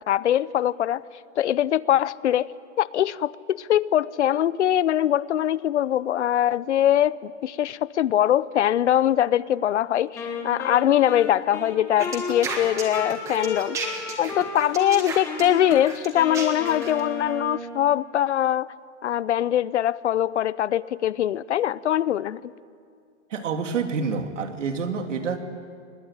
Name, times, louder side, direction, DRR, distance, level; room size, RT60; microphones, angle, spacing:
voice 1, 0.1-1.0 1.4-2.5 2.8-13.8 14.2-18.7 19.0-22.5, left 11 dB, 70° left, 20 dB, 0.7 m, -22 dB
Wind instrument woodwind instrument, 10.1-14.9 15.2-17.9, left 3 dB, 5° left, 1.1 m, -34 dB
sound 1, 12.0-17.0, right 4 dB, 10° right, 1.5 m, -33 dB
voice 2, 23.3-25.4, right 5 dB, 75° right, 6 dB, 2.8 m, -27 dB
24.5 x 20.0 x 8.9 m, 2.2 s
hypercardioid pair, 175°, 37 cm